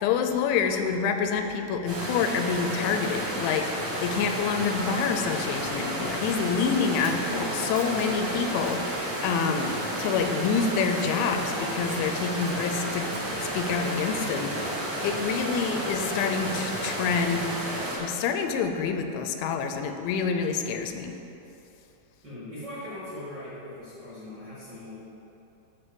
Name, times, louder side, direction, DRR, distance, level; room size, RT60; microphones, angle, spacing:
voice 1, 0.0-13.1 13.4-17.5 18.0-21.2, left 6 dB, 85° left, 6 dB, 2.9 m, -27 dB
sound 1, 1.9-18.0, right 1 dB, 60° right, 1.1 m, -32 dB
Applause, 2.1-17.9 18.7-19.0, left 1 dB, 70° left, 1.2 m, -47 dB
Scissors, 6.2-8.1 8.6-8.9 9.5-10.2 10.4-11.2 11.9-13.4, right 5 dB, 85° right, 1.8 m, -50 dB
voice 2, 22.2-25.0, left 1 dB, 35° right, -12 dB, 1.9 m, -40 dB
13.0 x 4.6 x 5.2 m, 2.9 s
omnidirectional pair, 5.1 m